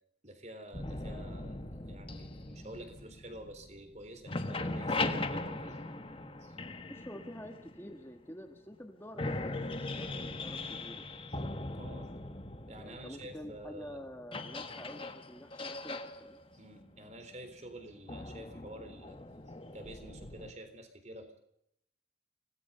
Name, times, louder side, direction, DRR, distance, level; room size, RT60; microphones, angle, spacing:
voice 1, 0.2-1.6 1.9-5.8 6.4-6.6 11.7-12.1 12.7-14.0 16.5-19.2 19.7-21.4, right 1 dB, 35° right, 8 dB, 3.7 m, -49 dB
sound 1, 0.7-3.9 4.2-8.1 8.7-8.8 9.1-20.5, left 2 dB, 30° left, 1.5 m, -40 dB
voice 2, 6.9-11.0 12.8-16.4, equal, 10° left, 4 dB, 1.3 m, -48 dB
25.5 x 18.5 x 5.6 m, 0.78 s
head